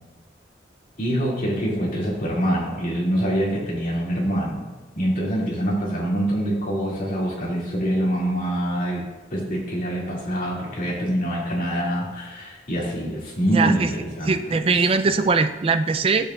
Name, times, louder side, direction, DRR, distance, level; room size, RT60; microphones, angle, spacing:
voice 1, 1.0-4.6 4.9-9.0 9.3-14.8, equal, 45° left, -5 dB, 2.3 m, -25 dB
voice 2, 13.4-13.9 14.3-16.3, right 4 dB, 30° right, 10 dB, 0.3 m, -21 dB
12.5 x 6.6 x 2.4 m, 1.3 s
head